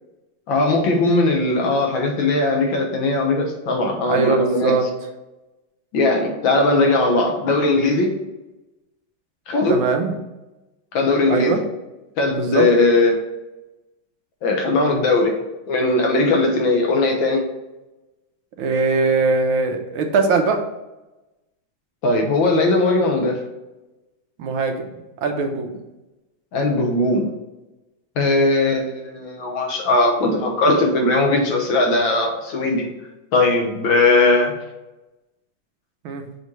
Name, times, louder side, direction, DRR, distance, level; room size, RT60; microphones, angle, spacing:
voice 1, 0.5-4.8 5.9-8.1 9.5-9.8 10.9-11.6 12.2-13.2 14.4-15.3 15.7-17.4 22.0-23.4 26.5-27.3 28.2-32.9 33.3-34.5, left 2 dB, 75° left, 1 dB, 1.9 m, -19 dB
voice 2, 4.1-4.9 9.7-10.1 11.3-11.6 12.4-12.6 18.6-20.6 24.4-24.8 25.2-25.7 36.0-36.2, right 4 dB, 85° right, 4 dB, 1.7 m, -20 dB
6.1 x 3.2 x 5.4 m, 1.0 s
omnidirectional pair, 2.2 m